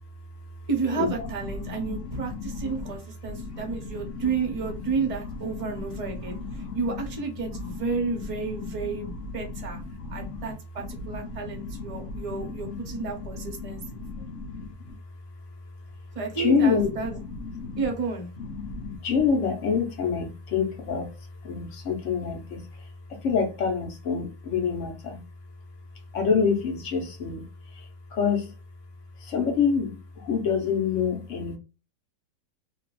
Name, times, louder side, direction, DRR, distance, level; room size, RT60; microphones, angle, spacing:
voice 1, 0.7-9.8 10.1-14.0 16.1-17.2 17.8-18.3, right 5 dB, 35° right, 0.6 m, -31 dB
voice 2, 1.6-2.7 3.3-4.2 4.8-4.9 5.6-7.0 7.5-8.0 8.4-14.7 16.4-17.8 18.4-21.1 21.4-22.6 23.2-25.2 26.1-27.5 28.1-28.5 29.2-31.6, left 5 dB, 60° left, 0.9 m, -28 dB
2.8 x 2.3 x 3.0 m
omnidirectional pair, 1.9 m